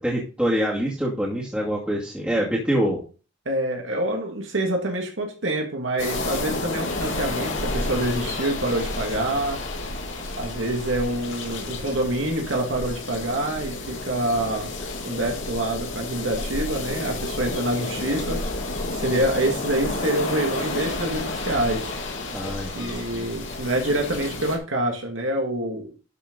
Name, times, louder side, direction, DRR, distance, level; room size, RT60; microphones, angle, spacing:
voice 1, 0.0-3.0 22.3-23.3, equal, 5° right, -6 dB, 2.2 m, -25 dB
voice 2, 3.5-9.6 10.4-14.7 15.0-18.4 18.9-21.9 22.8-25.9, right 1 dB, 85° right, 1 dB, 2.1 m, -26 dB
sound 1, 6.0-24.6, left 2 dB, 80° left, 2.7 m, -31 dB
12.0 x 6.4 x 4.0 m, 0.36 s
head